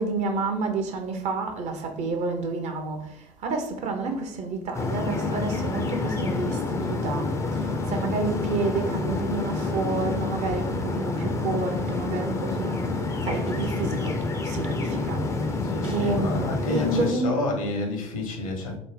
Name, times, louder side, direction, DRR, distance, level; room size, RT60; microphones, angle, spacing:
voice 1, 0.0-17.4, right 3 dB, 40° right, 0.6 m, -30 dB
sound 1, 4.7-17.1, left 3 dB, 15° left, 0.4 m, -28 dB
voice 2, 15.6-18.8, left 2 dB, 70° left, 0.8 m, -30 dB
3.9 x 2.1 x 3.2 m
figure-of-eight pair, 65°, 18 cm